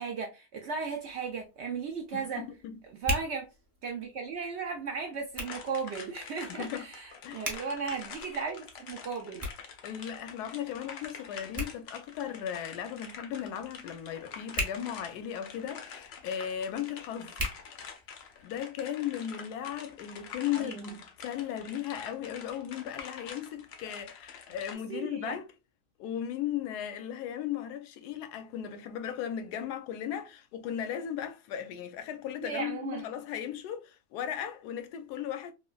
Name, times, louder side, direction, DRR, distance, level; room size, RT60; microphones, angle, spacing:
voice 1, 0.0-2.4 2.9-3.5 3.8-9.5 20.5-20.8 24.9-25.4 32.4-33.1, right 5 dB, 75° right, 0.6 m, -36 dB
Hands, 0.8-18.5, equal, 20° right, 0.7 m, -42 dB
voice 2, 2.1-2.8 6.5-6.9 7.2-7.5 9.8-17.3 18.4-25.5 26.0-35.5, left 10 dB, 85° left, 1.1 m, -36 dB
sound 1, 5.4-24.7, left 6 dB, 70° left, 0.6 m, -46 dB
3.1 x 2.2 x 2.3 m
omnidirectional pair, 1.7 m